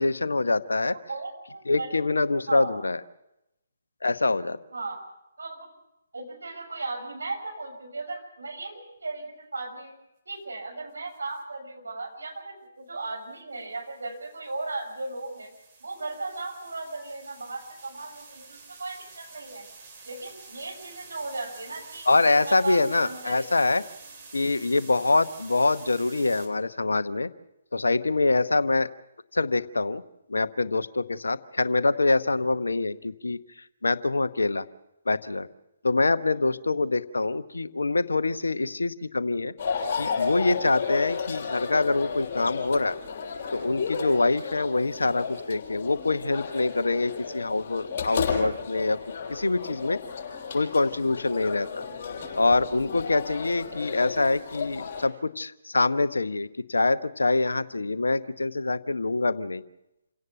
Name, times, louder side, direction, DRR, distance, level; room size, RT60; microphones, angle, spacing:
voice 1, 0.0-0.9 1.7-3.0 4.0-4.6 22.1-23.8 24.3-27.3 27.7-28.9 29.3-30.0 30.3-33.4 33.8-34.7 35.1-35.5 35.8-39.5 40.0-43.0 43.5-49.0 49.3-50.0 50.5-51.8 52.3-59.6, left 3 dB, 70° left, 13 dB, 1.0 m, -25 dB
voice 2, 1.1-1.9 2.5-2.8 4.7-5.0 5.4-5.7 6.1-9.9 10.2-15.5 15.8-19.6 20.0-23.5 25.6-25.7 44.8-44.9, right 3 dB, 70° right, 3 dB, 6.4 m, -36 dB
sound 1, 11.1-11.4 13.6-26.5, right 4 dB, 30° right, 4.6 m, -49 dB
sound 2, 39.6-55.1, left 5 dB, 35° left, 6.8 m, -33 dB
28.0 x 17.5 x 5.6 m, 0.87 s
figure-of-eight pair, 135°, 0 cm